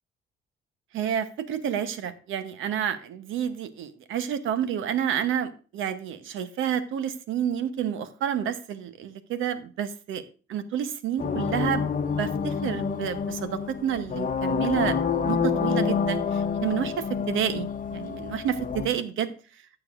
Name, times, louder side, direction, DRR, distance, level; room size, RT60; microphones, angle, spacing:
voice 1, 0.9-10.2 10.5-11.9 12.2-14.9 15.2-19.3, right 9 dB, 85° right, 12 dB, 0.9 m, -29 dB
sound 1, 11.2-18.9, left 6 dB, 45° left, 0.9 m, -28 dB
14.5 x 6.9 x 2.5 m, 0.36 s
cardioid pair, 90°, 20 cm